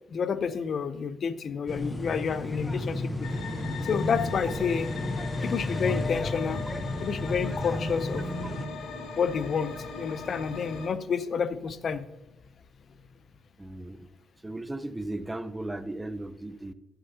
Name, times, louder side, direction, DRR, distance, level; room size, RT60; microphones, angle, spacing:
voice 1, 0.1-3.3 3.8-4.9 5.4-6.6 7.0-8.3 9.2-12.0, left 6 dB, 55° left, 14 dB, 0.6 m, -29 dB
sound 1, 1.7-8.7, left 1 dB, 20° left, 0.9 m, -32 dB
sound 2, 3.2-10.9, left 3 dB, 70° left, 2.3 m, -39 dB
voice 2, 13.6-14.1 14.4-16.7, right 1 dB, 10° right, 13 dB, 0.6 m, -36 dB
11.5 x 10.5 x 2.8 m, 1.0 s
cardioid pair, 90°, 0 cm